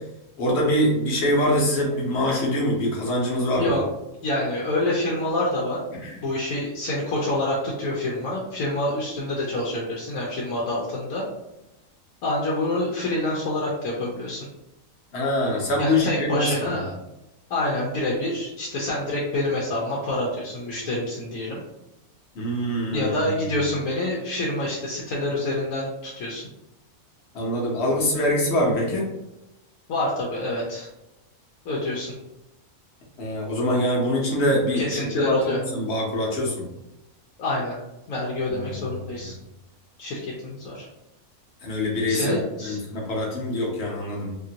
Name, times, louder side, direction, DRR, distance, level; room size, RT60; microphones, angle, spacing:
voice 1, 0.4-3.7 6.0-6.2 15.1-16.5 22.3-23.7 27.3-29.1 33.2-36.7 38.5-38.6 41.6-44.3, left 1 dB, 50° left, -2 dB, 1.0 m, -24 dB
voice 2, 4.2-5.8 6.2-11.2 12.2-14.5 15.8-16.9 17.5-21.6 22.9-26.5 29.9-30.9 31.6-32.1 34.7-35.6 37.4-37.7 38.1-39.3 40.0-40.9 42.1-42.8, left 1 dB, 75° left, -4 dB, 1.1 m, -27 dB
2.9 x 2.5 x 2.7 m, 0.90 s
omnidirectional pair, 1.5 m